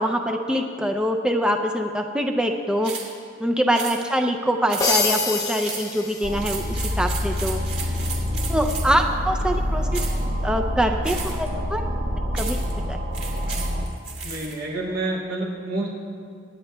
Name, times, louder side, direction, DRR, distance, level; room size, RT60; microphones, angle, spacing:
voice 1, 0.0-2.9 3.4-6.6 7.0-7.6 8.5-10.0 10.4-11.8 12.4-12.6 12.9-13.0, equal, 5° right, 4 dB, 0.4 m, -24 dB
sound 1, 2.8-3.1 3.7-4.0 4.7-5.1 5.6-5.9 6.4-9.0 9.9-10.2 11.0-11.5 12.3-12.7 13.1-14.5, right 5 dB, 45° right, 2.3 m, -34 dB
sound 2, 4.8-6.9, left 4 dB, 15° left, 0.8 m, -26 dB
sound 3, 6.2-13.9, equal, 65° right, 1.3 m, -26 dB
voice 2, 14.2-15.9, right 2 dB, 85° right, -1 dB, 3.0 m, -28 dB
26.5 x 9.6 x 2.3 m, 2.3 s
head